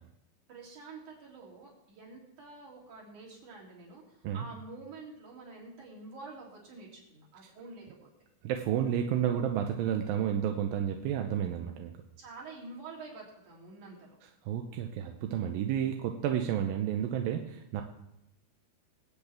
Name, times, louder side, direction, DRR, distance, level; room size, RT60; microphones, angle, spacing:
voice 1, 0.5-8.1 12.2-14.2, right 3 dB, 60° right, -4 dB, 4.7 m, -48 dB
voice 2, 8.4-11.9 14.5-17.8, right 9 dB, 85° right, 4 dB, 2.5 m, -31 dB
24.5 x 8.3 x 3.5 m, 0.89 s
omnidirectional pair, 4.1 m